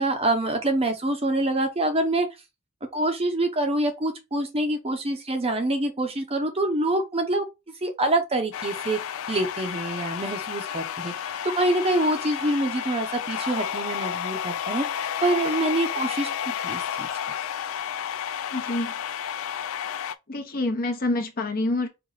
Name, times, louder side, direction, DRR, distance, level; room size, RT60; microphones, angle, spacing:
voice 1, 0.0-2.3 2.9-7.4 7.8-9.0 9.3-17.1, right 1 dB, 25° right, 0.8 m, -26 dB
sound 1, 8.5-20.1, left 9 dB, 65° left, 0.4 m, -31 dB
voice 2, 18.5-18.9 20.3-21.9, left 2 dB, 45° left, 1.0 m, -27 dB
4.9 x 2.5 x 3.8 m
head